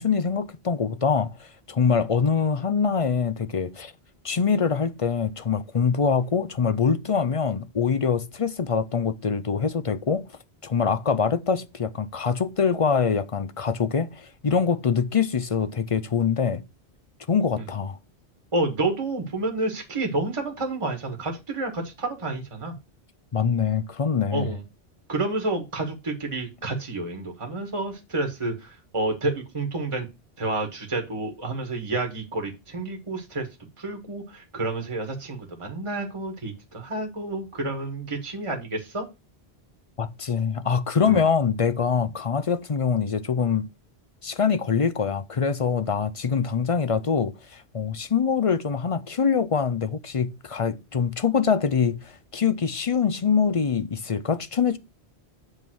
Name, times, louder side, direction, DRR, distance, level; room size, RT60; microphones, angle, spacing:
voice 1, 0.0-3.9 4.2-10.2 10.6-16.6 17.3-18.0 23.3-24.5 40.0-43.7 44.2-54.8, left 6 dB, 40° left, 0.5 m, -24 dB
voice 2, 18.5-22.8 24.3-24.6 25.1-30.1 30.4-33.5 33.8-39.0 41.0-41.2, right 2 dB, 30° right, 1.5 m, -29 dB
8.0 x 3.7 x 6.2 m
omnidirectional pair, 1.1 m